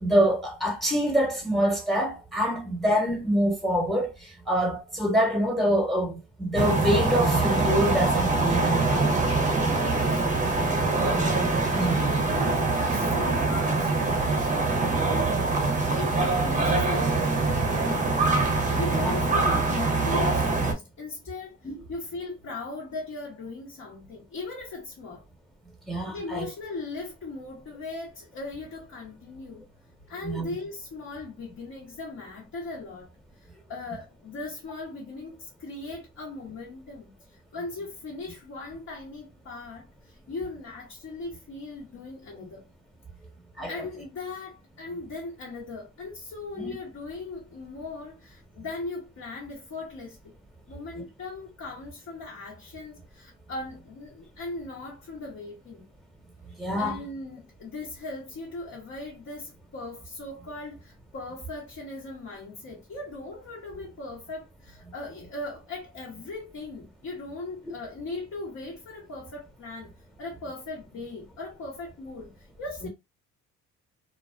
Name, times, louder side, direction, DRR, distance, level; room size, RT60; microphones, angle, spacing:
voice 1, 0.0-4.1 4.5-9.1 11.7-12.0 18.9-19.1 21.6-21.7 25.9-26.5 30.2-30.5 43.6-43.7 46.6-46.7 56.6-57.0 72.8-72.9, equal, ahead, 1.1 m, -25 dB
sound 1, 6.5-20.7, right 3 dB, 25° right, 0.7 m, -24 dB
voice 2, 9.7-15.6 15.9-18.1 18.4-25.2 26.1-29.6 30.1-33.1 33.4-42.7 43.7-50.3 50.7-55.8 56.8-69.9 70.2-72.9, left 3 dB, 55° left, 1.1 m, -39 dB
2.4 x 2.3 x 2.4 m
cardioid pair, 80°, 33 cm